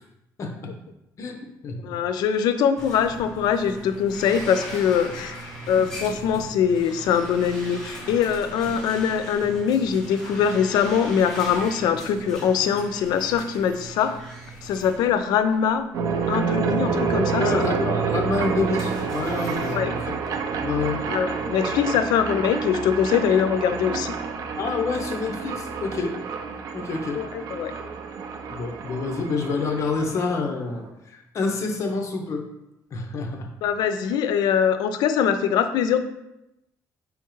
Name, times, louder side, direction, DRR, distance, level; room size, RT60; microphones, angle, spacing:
voice 1, 0.4-0.7 1.2-2.0 17.4-20.1 20.6-21.0 24.6-26.1 26.7-27.2 28.5-32.5 32.9-33.5, left 4 dB, 45° left, 3 dB, 0.7 m, -27 dB
voice 2, 1.8-5.4 5.7-14.1 14.6-15.8 16.3-17.5 19.7-19.9 21.1-24.2 27.1-27.7 33.6-36.0, left 7 dB, 85° left, 10 dB, 0.4 m, -22 dB
sound 1, 2.8-15.8 16.2-16.4 17.2-17.3 18.3-19.8, right 1 dB, 5° left, 1.0 m, -39 dB
sound 2, 15.9-30.9, right 5 dB, 60° right, 0.5 m, -28 dB
4.8 x 3.5 x 3.1 m, 0.86 s
cardioid pair, 140°, 7 cm